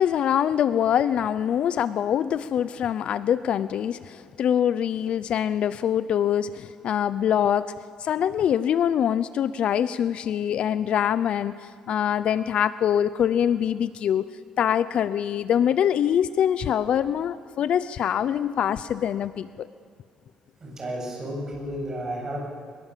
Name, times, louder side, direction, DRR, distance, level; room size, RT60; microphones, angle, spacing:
voice 1, 0.0-7.7 8.0-14.3 14.6-19.7, left 9 dB, 60° left, 15 dB, 0.6 m, -24 dB
voice 2, 20.6-22.4, right 1 dB, 25° right, -1 dB, 7.1 m, -32 dB
24.0 x 21.5 x 7.5 m, 2.1 s
cardioid pair, 145°, 2 cm